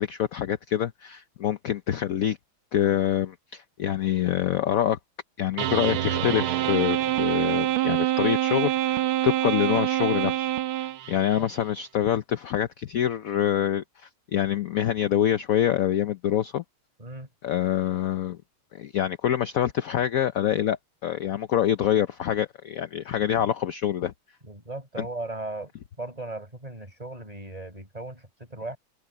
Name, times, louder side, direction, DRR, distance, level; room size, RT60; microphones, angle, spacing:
voice 1, 0.0-2.4 2.7-5.0 5.4-16.6 17.4-18.4 18.7-24.1 25.0-25.1, left 10 dB, 65° left, 0.8 m, -26 dB
sound 1, 5.6-11.4, right 13 dB, 85° right, 1.7 m, -25 dB
voice 2, 11.1-11.5 17.0-17.3 24.4-25.7 26.0-28.8, right 2 dB, 15° right, 5.8 m, -37 dB
omnidirectional pair, 2.3 m